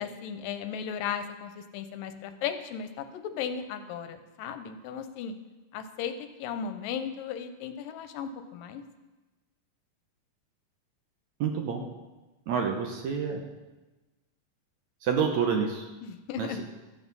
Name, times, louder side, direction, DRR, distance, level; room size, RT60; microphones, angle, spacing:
voice 1, 0.0-5.3 5.7-8.8 16.0-16.6, left 7 dB, 80° left, 9 dB, 2.4 m, -36 dB
voice 2, 11.4-11.8 12.5-13.4 15.0-15.9 16.4-16.6, right 6 dB, 70° right, 2 dB, 2.0 m, -28 dB
13.0 x 8.2 x 5.4 m, 1.2 s
omnidirectional pair, 4.0 m